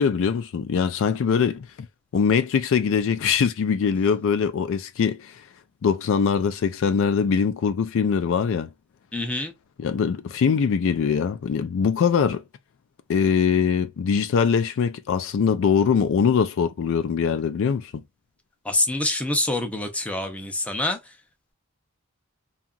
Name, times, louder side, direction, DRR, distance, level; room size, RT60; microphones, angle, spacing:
voice 1, 0.0-1.7 2.1-5.4 5.8-8.7 9.8-12.4 13.1-18.0, left 6 dB, 60° left, 0.3 m, -22 dB
voice 2, 9.1-9.5 18.6-21.0, left 2 dB, 5° left, 0.5 m, -26 dB
2.8 x 2.4 x 2.4 m
head